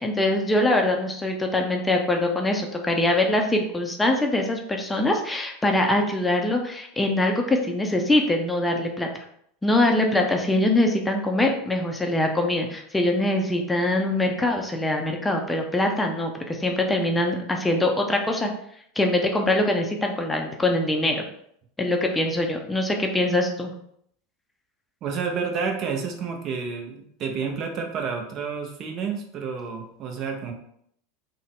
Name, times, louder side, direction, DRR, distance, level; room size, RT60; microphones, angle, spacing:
voice 1, 0.0-9.1 9.6-18.5 19.0-21.3 21.8-23.7, left 1 dB, 10° left, 2 dB, 0.5 m, -23 dB
voice 2, 25.0-30.5, right 5 dB, 45° right, 3 dB, 0.7 m, -30 dB
3.5 x 2.2 x 3.5 m, 0.69 s
hypercardioid pair, 85°, 0 cm